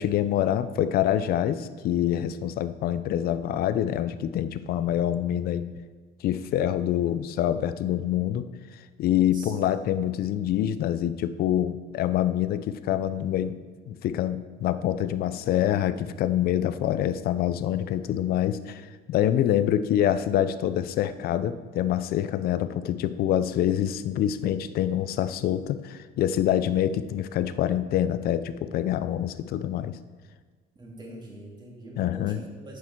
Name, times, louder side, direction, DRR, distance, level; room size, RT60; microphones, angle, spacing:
voice 1, 0.0-5.7 6.2-8.4 9.0-13.6 13.9-29.9 32.0-32.4, left 11 dB, 55° left, 13 dB, 0.6 m, -26 dB
voice 2, 9.3-9.8 19.4-19.5 30.7-32.8, right 1 dB, 25° right, -3 dB, 2.8 m, -44 dB
11.0 x 8.3 x 4.6 m, 1.4 s
cardioid pair, 135°, 18 cm